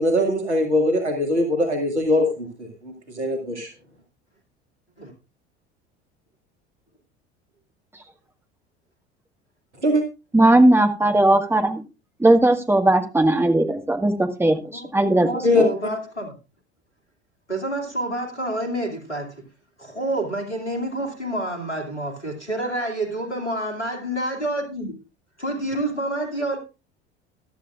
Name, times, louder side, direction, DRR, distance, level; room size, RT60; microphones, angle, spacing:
voice 1, 0.0-3.7 9.8-10.0 15.4-15.6, left 1 dB, 85° right, 2.1 m, -21 dB
voice 2, 10.3-11.8 12.2-15.6, right 1 dB, 5° right, 1.7 m, -18 dB
voice 3, 14.7-16.3 17.5-19.3 19.8-24.9 25.4-26.6, right 1 dB, 85° left, 2.6 m, -28 dB
15.0 x 12.0 x 2.5 m
figure-of-eight pair, 70°, 33 cm